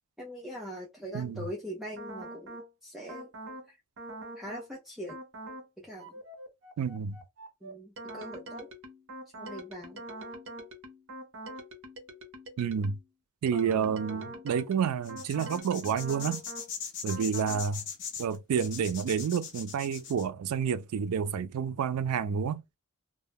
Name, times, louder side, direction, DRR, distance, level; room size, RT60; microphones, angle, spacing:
voice 1, 0.2-3.3 3.7-3.8 4.4-5.2 5.8-6.2 7.6-8.7 9.4-10.0 13.5-14.0, equal, ahead, 0.5 m, -42 dB
voice 2, 1.1-1.4 6.8-7.2 12.6-13.0 13.4-16.4 17.0-17.8 18.2-22.6, right 7 dB, 85° right, 0.3 m, -29 dB
sound 1, 2.0-2.7 3.1-3.7 4.0-4.7 5.1-5.7 6.0-13.1 13.5-16.7 17.1-17.7, right 1 dB, 60° right, 0.8 m, -44 dB
sound 2, 15.0-20.2, left 7 dB, 60° left, 0.7 m, -40 dB
2.2 x 2.1 x 3.3 m
head